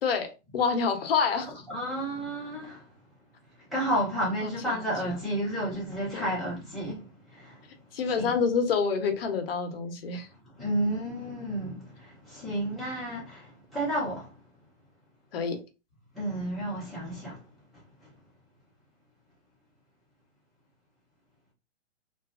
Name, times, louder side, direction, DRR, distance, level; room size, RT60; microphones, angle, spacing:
voice 1, 0.0-1.5 4.4-5.2 6.1-6.3 7.9-10.3 15.3-15.6, left 5 dB, 55° left, 0.7 m, -28 dB
voice 2, 1.7-2.8 3.7-7.6 8.1-8.3 10.6-14.3 16.1-17.4, right 1 dB, ahead, 0.5 m, -31 dB
2.6 x 2.3 x 2.4 m
hypercardioid pair, 155°, 36 cm